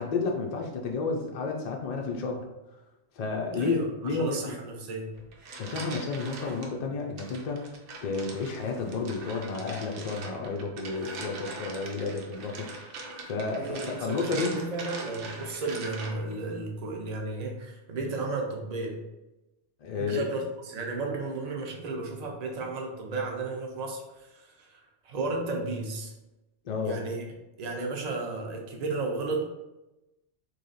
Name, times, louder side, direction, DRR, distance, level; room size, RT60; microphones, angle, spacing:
voice 1, 0.0-2.5 3.1-4.6 5.6-7.7 8.0-13.0 13.3-14.5 19.8-20.3 26.6-27.0, left 4 dB, 65° left, 1 dB, 0.4 m, -31 dB
voice 2, 3.5-5.1 13.6-19.0 20.0-26.1 26.8-27.2 27.6-29.4, right 3 dB, 45° right, 1 dB, 0.6 m, -33 dB
sound 1, 5.1-6.7 7.2-16.4, right 3 dB, 90° right, 1.0 m, -42 dB
3.1 x 2.7 x 3.9 m, 0.99 s
omnidirectional pair, 1.2 m